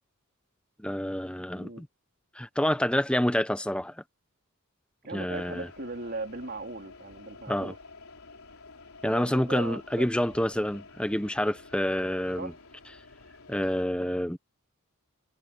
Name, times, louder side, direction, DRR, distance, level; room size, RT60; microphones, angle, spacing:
voice 1, 0.8-1.9 2.4-3.9 5.1-5.7 7.5-7.7 9.0-12.5 13.5-14.4, equal, 5° left, 0.9 m, -28 dB
voice 2, 5.0-7.8 9.0-10.1 12.4-12.6, right 2 dB, 50° right, 3.6 m, -38 dB
sound 1, 5.3-13.9, left 3 dB, 80° left, 3.7 m, -50 dB
head